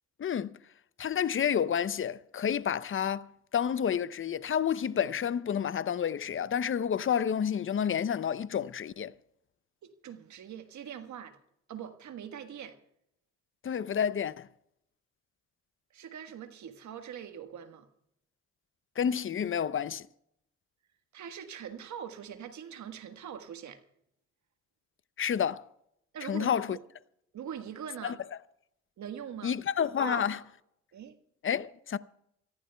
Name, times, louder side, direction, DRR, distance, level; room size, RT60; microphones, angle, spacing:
voice 1, 0.2-0.5 1.0-3.3 3.5-9.1 13.6-14.5 19.0-20.0 25.2-25.6 26.2-26.8 28.0-28.1 29.4-30.4 31.4-32.0, left 8 dB, 40° left, 0.7 m, -29 dB
voice 2, 9.8-11.4 11.7-12.8 15.9-17.9 21.1-23.8 26.1-26.8 27.3-28.2 29.0-29.5 30.0-30.4 30.9-31.2, right 8 dB, 60° right, 1.6 m, -42 dB
28.5 x 14.5 x 2.3 m
hypercardioid pair, 45°, 32 cm